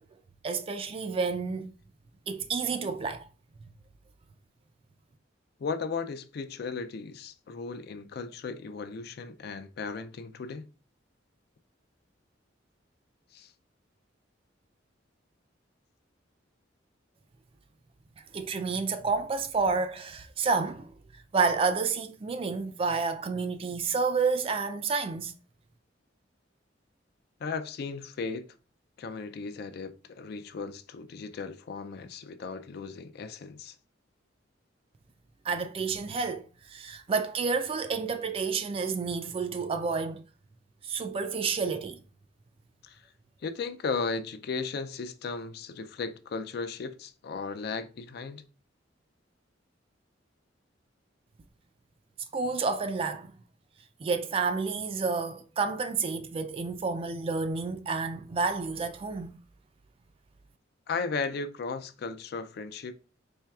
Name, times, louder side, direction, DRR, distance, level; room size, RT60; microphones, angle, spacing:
voice 1, 0.4-1.7 2.3-3.3 18.3-20.9 21.3-25.3 35.4-40.2 40.8-42.0 52.3-53.3 54.0-59.4, right 4 dB, 30° right, 0.3 m, -30 dB
voice 2, 5.6-10.7 13.3-13.5 27.4-28.5 29.0-33.8 42.8-43.0 43.4-48.4 60.9-62.9, left 4 dB, 55° left, 0.4 m, -36 dB
4.4 x 3.3 x 2.3 m
head